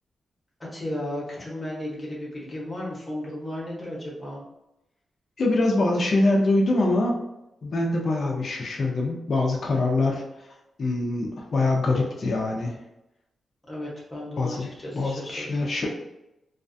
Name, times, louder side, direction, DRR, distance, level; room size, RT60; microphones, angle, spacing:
voice 1, 0.7-4.4 13.7-15.7, left 1 dB, 20° left, -5 dB, 0.8 m, -34 dB
voice 2, 5.4-7.2 7.6-10.2 10.8-12.7 14.4-14.7 14.9-15.9, left 2 dB, 45° left, -1 dB, 0.4 m, -24 dB
2.3 x 2.2 x 2.5 m, 0.90 s
wide cardioid pair, 140°, 0 cm